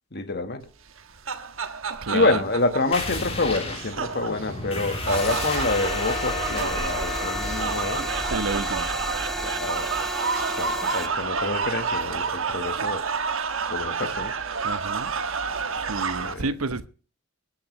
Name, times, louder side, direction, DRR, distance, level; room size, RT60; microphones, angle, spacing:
voice 1, 0.1-0.7 2.1-8.1 9.4-9.9 10.6-13.1 13.7-14.4 16.2-16.5, left 2 dB, 50° left, 1.5 m, -27 dB
sound 1, 0.9-16.3, right 5 dB, 65° right, 1.3 m, -30 dB
voice 2, 2.0-2.4 8.3-8.9 14.6-15.2 15.9-16.9, right 3 dB, 80° right, 1.0 m, -30 dB
sound 2, 2.9-12.1, left 2 dB, 30° left, 3.3 m, -33 dB
sound 3, 5.1-11.1, equal, ahead, 0.6 m, -33 dB
22.0 x 10.5 x 3.3 m
head